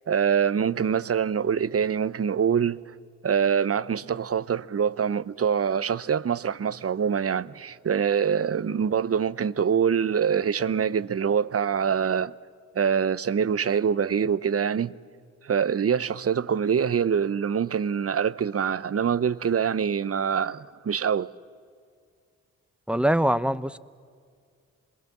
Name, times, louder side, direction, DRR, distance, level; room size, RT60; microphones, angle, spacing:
voice 1, 0.1-2.8 3.2-12.3 12.7-14.9 15.4-21.3, right 7 dB, 45° right, 0.8 m, -25 dB
voice 2, 22.9-23.8, right 1 dB, 5° right, 0.8 m, -23 dB
26.5 x 21.5 x 7.4 m
supercardioid pair, 50°, 34 cm